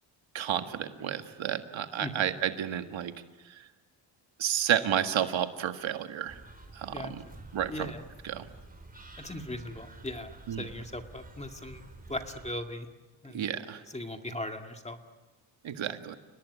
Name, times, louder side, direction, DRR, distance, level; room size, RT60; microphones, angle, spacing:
voice 1, 0.3-3.1 3.5-3.7 4.4-6.4 6.7-7.2 7.5-7.9 8.2-8.5 10.5-10.6 13.3-13.8 15.6-16.2, right 10 dB, 70° right, 7 dB, 1.8 m, -31 dB
sound 1, 6.3-12.5, right 2 dB, 20° right, 4.9 m, -50 dB
voice 2, 6.9-7.3 7.7-8.0 9.2-11.8 12.1-12.9 13.2-13.5 13.9-15.0, left 1 dB, 15° left, 5 dB, 2.0 m, -38 dB
30.0 x 19.5 x 9.8 m, 1.3 s
cardioid pair, 110°, 47 cm